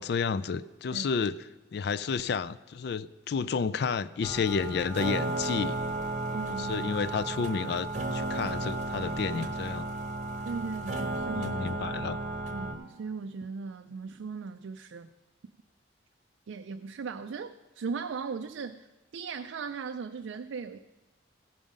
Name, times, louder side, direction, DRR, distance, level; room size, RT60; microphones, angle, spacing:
voice 1, 0.0-1.4 1.7-5.8 6.6-9.9 11.3-12.2, left 5 dB, 55° left, 15 dB, 0.3 m, -31 dB
sound 1, 4.2-12.7, right 2 dB, 40° right, 0.8 m, -34 dB
voice 2, 6.3-6.9 10.4-11.6 12.5-15.1 16.5-18.9 19.1-20.8, right 5 dB, 80° right, 8 dB, 0.4 m, -38 dB
16.0 x 5.5 x 5.1 m, 1.2 s
head